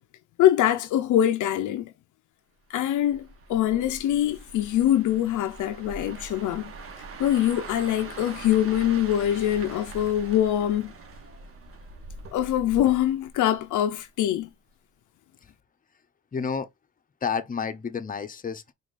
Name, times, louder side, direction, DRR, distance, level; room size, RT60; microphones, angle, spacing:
voice 1, 0.4-1.9 2.7-6.7 7.2-10.9 12.3-14.5, left 11 dB, 80° left, 0.7 m, -24 dB
sound 1, 3.0-14.1 14.4-14.7, right 3 dB, 45° right, 1.6 m, -43 dB
voice 2, 16.3-16.7 17.2-18.7, left 6 dB, 30° left, 0.8 m, -30 dB
4.7 x 2.7 x 4.2 m
cardioid pair, 90°, 30 cm